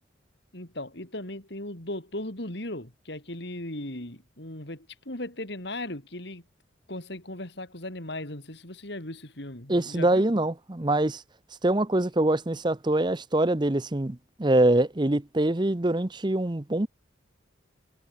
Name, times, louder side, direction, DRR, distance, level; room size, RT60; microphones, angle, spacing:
voice 1, 0.5-6.4 6.9-10.2, left 1 dB, 55° left, 3.3 m, -37 dB
voice 2, 9.7-11.2 11.6-16.9, right 1 dB, 20° right, 0.7 m, -24 dB
head